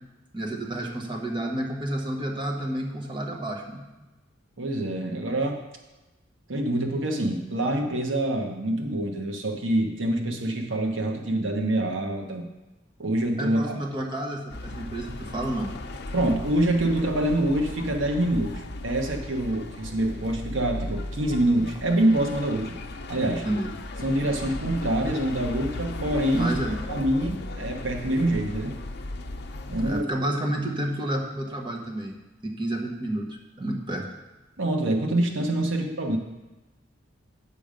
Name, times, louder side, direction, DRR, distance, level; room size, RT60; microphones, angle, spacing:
voice 1, 0.3-3.8 13.4-15.7 23.4-23.7 26.3-26.8 29.8-32.1 32.4-34.1 35.6-35.7, right 1 dB, 25° right, 1 dB, 1.3 m, -30 dB
voice 2, 4.6-5.6 6.5-12.5 13.0-13.8 16.1-22.7 23.1-23.5 24.0-26.5 26.9-28.8 29.7-30.1 34.6-36.2, right 1 dB, 75° right, 4 dB, 1.1 m, -26 dB
sound 1, 14.5-30.0, left 2 dB, 55° left, 0.7 m, -36 dB
8.4 x 6.9 x 5.1 m, 1.1 s
head